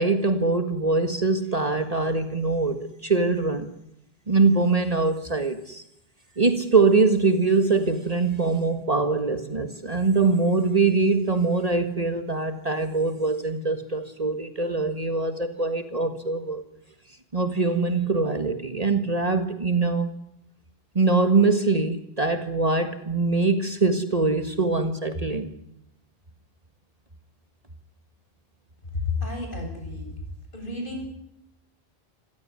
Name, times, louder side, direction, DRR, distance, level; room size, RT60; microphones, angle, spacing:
voice 1, 0.0-3.7 4.3-5.8 6.4-16.6 17.3-20.1 21.0-25.5, right 3 dB, 40° right, 8 dB, 1.8 m, -23 dB
voice 2, 29.0-30.1 30.5-31.1, left 3 dB, 55° left, 3 dB, 7.9 m, -31 dB
26.5 x 16.0 x 9.7 m, 0.79 s
omnidirectional pair, 1.0 m